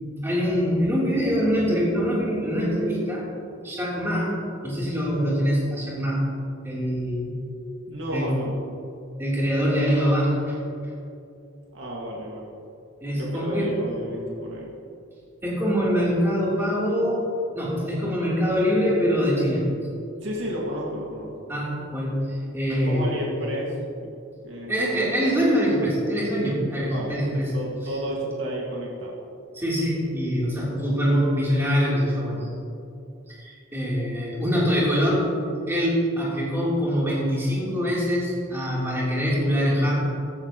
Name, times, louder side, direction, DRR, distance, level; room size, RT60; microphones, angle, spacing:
voice 1, 0.0-3.2 3.6-4.3 4.6-6.3 6.6-7.3 8.1-8.4 9.2-10.6 13.0-13.7 15.4-19.7 21.5-23.2 24.7-27.6 29.5-32.5 33.3-35.3 35.7-39.9, equal, 10° right, -7 dB, 3.4 m, -24 dB
voice 2, 7.9-8.5 11.7-12.5 13.1-14.7 20.2-21.3 22.8-23.7 24.0-24.1 24.4-25.1 26.9-29.1, equal, 60° right, -4 dB, 2.0 m, -32 dB
15.0 x 13.5 x 3.0 m, 2.6 s
head